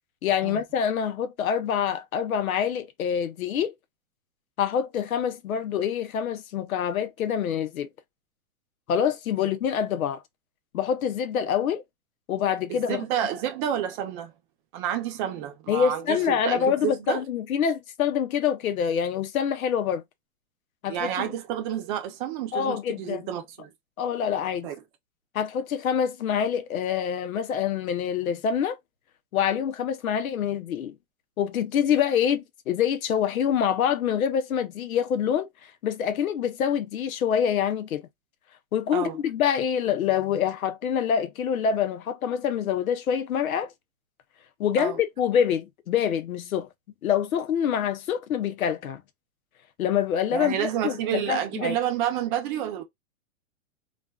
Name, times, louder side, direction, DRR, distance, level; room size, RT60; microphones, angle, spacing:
voice 1, 0.2-3.7 4.6-7.9 8.9-10.2 10.7-11.8 12.3-13.0 15.7-20.0 20.8-21.3 22.5-23.2 24.0-24.7 25.3-28.8 29.3-31.0 31.4-35.5 35.8-38.0 38.7-43.7 44.6-46.7 47.0-49.0 49.8-51.8, left 8 dB, 90° left, 0.7 m, -26 dB
voice 2, 12.7-14.3 14.7-17.2 20.9-23.7 24.6-24.7 38.9-39.1 44.8-45.0 50.3-52.8, right 10 dB, 35° right, 0.7 m, -29 dB
2.4 x 2.4 x 2.3 m
hypercardioid pair, 135°, 41 cm